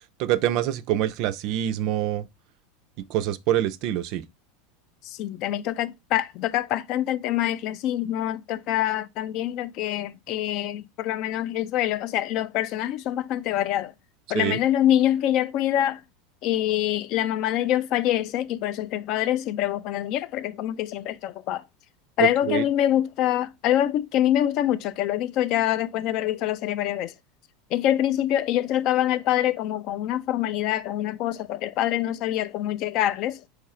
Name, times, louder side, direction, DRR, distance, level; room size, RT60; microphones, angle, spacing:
voice 1, 0.2-2.3 3.1-4.2 14.3-14.6 22.2-22.6, right 12 dB, 50° right, 0.4 m, -25 dB
voice 2, 5.0-13.9 14.3-16.0 16.4-21.6 22.2-27.1 27.7-33.4, left 12 dB, 45° left, 0.3 m, -25 dB
4.7 x 2.4 x 4.1 m
supercardioid pair, 150°, 0 cm